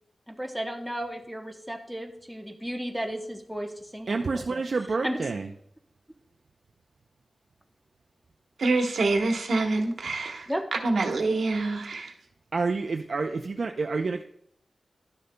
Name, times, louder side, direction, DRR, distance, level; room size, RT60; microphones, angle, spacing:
voice 1, 0.3-4.6 5.0-5.3 10.5-10.7, equal, ahead, 3 dB, 0.9 m, -34 dB
voice 2, 4.1-5.5 12.5-14.2, right 4 dB, 60° right, 4 dB, 0.5 m, -28 dB
voice 3, 8.6-12.1, right 3 dB, 80° right, 4 dB, 1.1 m, -26 dB
11.5 x 6.6 x 2.2 m, 0.69 s
wide cardioid pair, 90°, 0 cm